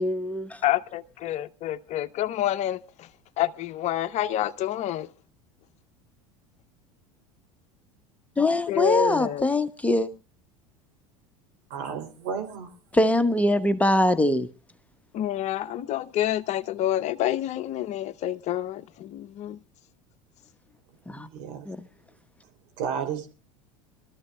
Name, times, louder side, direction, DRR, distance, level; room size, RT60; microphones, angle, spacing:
voice 1, 0.0-0.6 8.4-10.1 12.9-14.5 21.1-21.3 21.6-21.8, left 1 dB, 10° left, 1.0 m, -23 dB
voice 2, 0.6-3.1 3.4-5.1 8.7-9.5 15.1-19.6, left 12 dB, 45° left, 0.6 m, -28 dB
voice 3, 11.7-12.7 21.2-21.7 22.8-23.3, right 7 dB, 60° right, 3.0 m, -32 dB
26.0 x 13.5 x 2.3 m
hypercardioid pair, 75°, 17 cm